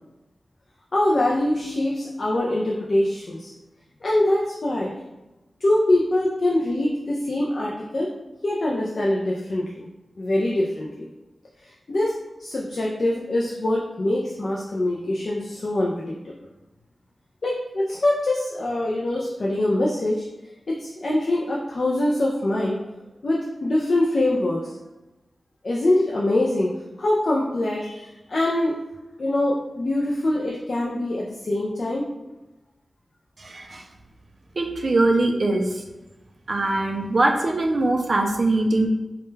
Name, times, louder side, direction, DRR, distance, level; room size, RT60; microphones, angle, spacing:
voice 1, 0.9-3.5 4.0-4.9 5.6-8.1 8.4-9.8 10.2-11.1 11.6-12.1 12.4-16.3 17.4-20.2 20.7-22.8 23.2-24.7 25.6-26.7 27.0-28.8 29.2-32.1, left 1 dB, 50° left, -3 dB, 0.3 m, -23 dB
voice 2, 33.4-33.9 34.6-35.8 36.5-38.9, right 2 dB, 50° right, 2 dB, 0.3 m, -22 dB
2.2 x 2.1 x 3.1 m, 1.1 s
wide cardioid pair, 120°, 0 cm